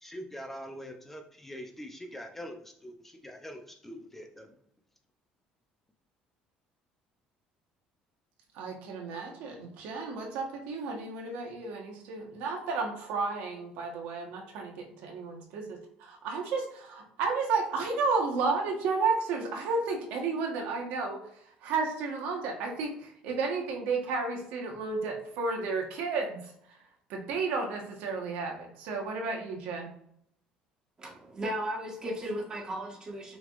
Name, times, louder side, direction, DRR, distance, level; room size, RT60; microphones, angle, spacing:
voice 1, 0.0-4.6, equal, 10° left, 4 dB, 0.6 m, -43 dB
voice 2, 8.5-21.2 21.6-26.8 27.1-29.9, right 4 dB, 80° right, 2 dB, 1.2 m, -32 dB
voice 3, 31.0-33.4, equal, 25° right, -1 dB, 1.5 m, -35 dB
6.2 x 3.4 x 2.5 m, 0.71 s
cardioid pair, 120°, 3 cm